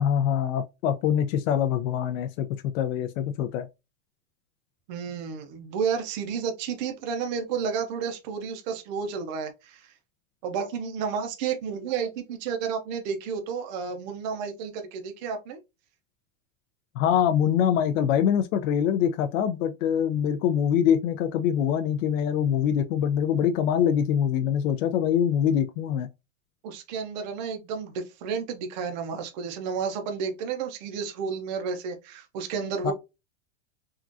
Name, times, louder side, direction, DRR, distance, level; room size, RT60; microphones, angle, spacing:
voice 1, 0.0-3.7 17.0-26.1 32.8-32.9, left 9 dB, 80° left, 0.5 m, -24 dB
voice 2, 4.9-9.9 10.4-15.6 26.6-32.9, right 6 dB, 35° right, 0.5 m, -31 dB
3.6 x 2.3 x 2.5 m
supercardioid pair, 175°, 39 cm